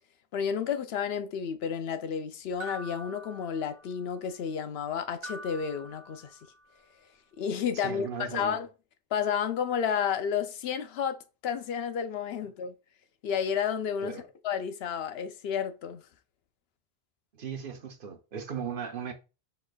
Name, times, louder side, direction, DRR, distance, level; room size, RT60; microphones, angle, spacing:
voice 1, 0.3-6.4 7.4-8.7 9.1-12.7 13.2-14.2 14.4-16.0, left 7 dB, 75° left, 0.8 m, -31 dB
sound 1, 2.6-4.1 5.2-6.7, right 1 dB, 40° right, 1.4 m, -45 dB
voice 2, 7.8-8.6 14.0-14.3 17.3-19.1, right 7 dB, 60° right, 0.9 m, -37 dB
6.4 x 3.3 x 2.3 m
omnidirectional pair, 1.1 m